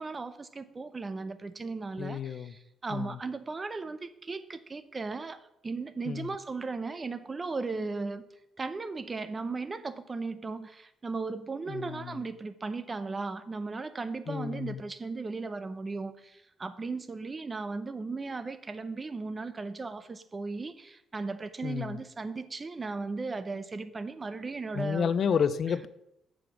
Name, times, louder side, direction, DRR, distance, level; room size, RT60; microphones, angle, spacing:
voice 1, 0.0-2.2 2.8-4.0 4.3-4.4 4.7-5.3 5.6-8.2 8.6-10.7 11.0-16.1 16.6-20.0 20.3-20.7 21.1-25.4, right 3 dB, 30° right, 13 dB, 0.6 m, -36 dB
voice 2, 2.0-2.5 2.9-3.2 6.1-6.3 11.7-12.2 14.3-14.8 21.6-22.0 24.7-25.9, left 7 dB, 55° left, 16 dB, 0.4 m, -31 dB
7.8 x 5.0 x 6.0 m, 0.82 s
cardioid pair, 90°, 0 cm